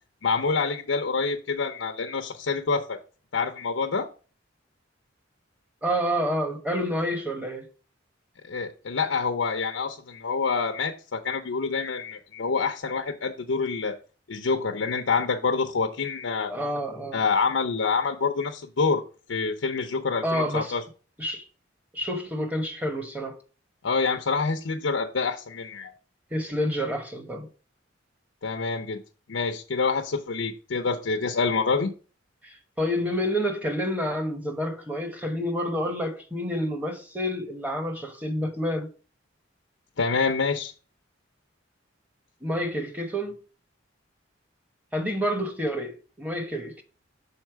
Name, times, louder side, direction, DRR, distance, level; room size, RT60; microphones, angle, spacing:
voice 1, 0.2-3.0 3.3-4.1 8.5-14.0 14.3-16.5 17.1-19.0 19.3-20.8 23.8-25.9 28.4-29.0 29.3-31.9 40.0-40.7, left 4 dB, 85° left, 0.7 m, -27 dB
voice 2, 5.8-7.7 16.5-17.2 20.2-20.8 21.2-21.5 21.9-23.4 26.3-27.5 32.4-38.9 42.4-43.3 44.9-46.8, equal, 10° right, 1.0 m, -28 dB
6.5 x 4.1 x 4.6 m
head